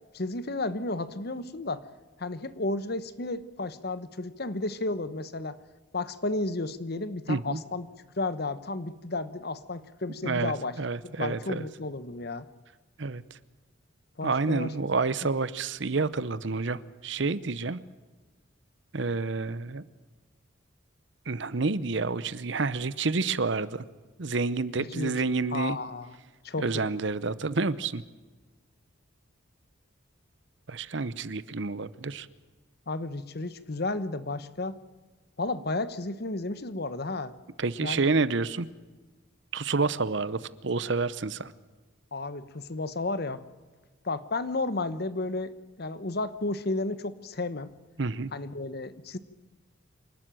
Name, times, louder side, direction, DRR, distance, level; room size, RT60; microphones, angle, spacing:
voice 1, 0.1-1.8 2.2-5.6 5.9-7.9 8.2-10.8 11.0-12.5 14.2-14.7 24.8-25.2 25.5-26.2 26.4-26.7 32.9-34.8 35.4-37.3 37.8-38.1 42.1-43.4 44.0-47.7 48.3-49.2, left 2 dB, 50° left, 14 dB, 1.0 m, -32 dB
voice 2, 7.3-7.6 10.2-11.7 13.0-13.2 14.2-17.8 18.9-19.8 21.3-23.8 24.2-25.8 26.6-28.0 30.7-32.3 37.6-38.7 39.5-41.5 48.0-48.3, right 4 dB, 60° right, 16 dB, 0.8 m, -29 dB
27.0 x 12.5 x 9.1 m, 1.3 s
head